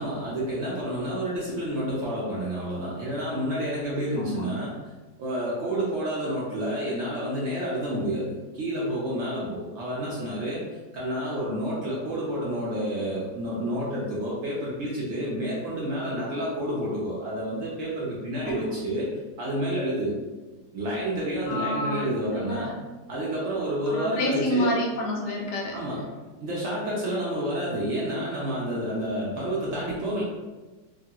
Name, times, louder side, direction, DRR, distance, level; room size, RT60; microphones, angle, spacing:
voice 1, 0.0-4.7 5.2-10.6 10.9-19.1 19.4-20.1 20.7-22.7 23.1-24.7 25.7-26.0 26.4-30.2, right 1 dB, 90° right, -6 dB, 0.6 m, -29 dB
voice 2, 21.5-22.8 23.9-25.8, left 1 dB, 70° left, -1 dB, 1.2 m, -29 dB
3.0 x 2.3 x 2.7 m, 1.3 s
omnidirectional pair, 2.0 m